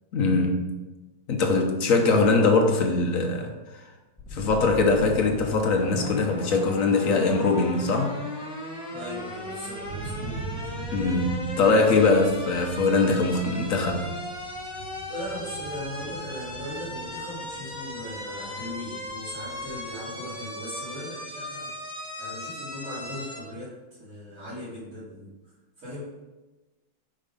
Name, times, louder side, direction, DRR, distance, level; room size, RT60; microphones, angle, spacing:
voice 1, 0.1-0.7 1.3-3.8 4.3-8.1 10.9-14.1, left 3 dB, 55° left, 3 dB, 0.9 m, -22 dB
sound 1, 4.2-23.4, left 2 dB, 5° right, 0.7 m, -37 dB
voice 2, 8.9-10.7 15.1-21.7 22.2-25.3 25.8-26.1, left 1 dB, 45° right, -14 dB, 3.1 m, -38 dB
Thunder, 9.2-19.8, right 4 dB, 70° right, 1.6 m, -42 dB
5.2 x 5.2 x 5.3 m, 1.1 s
omnidirectional pair, 2.2 m